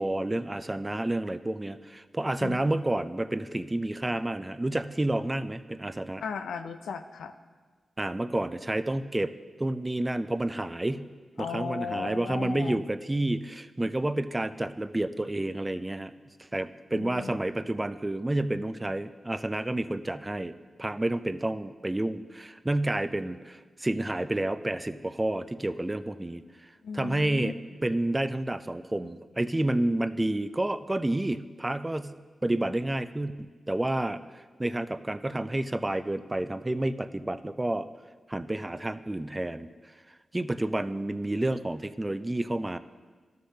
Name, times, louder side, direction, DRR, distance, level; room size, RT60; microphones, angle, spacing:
voice 1, 0.0-6.2 8.0-9.3 9.6-11.1 11.4-16.1 16.5-27.5 27.8-32.2 32.4-37.9 38.3-39.7 40.3-42.8, right 1 dB, 20° right, 12 dB, 0.4 m, -30 dB
voice 2, 6.2-7.3 11.4-12.8 16.9-17.4 26.8-27.5, left 6 dB, 90° left, 8 dB, 0.4 m, -36 dB
12.5 x 6.6 x 2.8 m, 1.4 s
cardioid pair, 45°, 0 cm